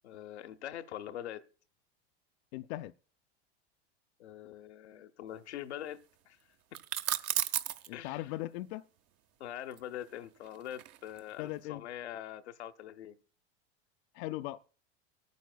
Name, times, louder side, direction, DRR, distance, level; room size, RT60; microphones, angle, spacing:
voice 1, 0.0-1.4 4.2-6.4 7.9-8.3 9.4-13.2, left 11 dB, 90° left, 0.8 m, -43 dB
voice 2, 2.5-2.9 7.9-8.8 11.4-11.8 14.1-14.6, left 16 dB, 60° left, 0.5 m, -38 dB
sound 1, 6.7-7.9 9.7-11.3, right 11 dB, 50° right, 0.9 m, -34 dB
23.5 x 9.4 x 2.2 m
hypercardioid pair, 105°, 33 cm